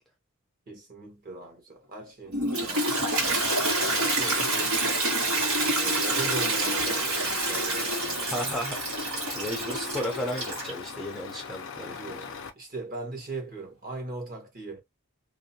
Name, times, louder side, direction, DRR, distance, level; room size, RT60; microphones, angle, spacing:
voice 1, 0.7-3.1 3.8-5.0 5.8-8.3 11.8-14.8, right 2 dB, 40° right, 1.1 m, -40 dB
Toilet flush, 2.3-10.9, right 2 dB, 75° right, 1.4 m, -27 dB
Truck, 3.1-12.5, left 5 dB, 55° left, 0.5 m, -40 dB
voice 2, 8.3-12.2, equal, ahead, 0.5 m, -35 dB
2.6 x 2.1 x 2.7 m
head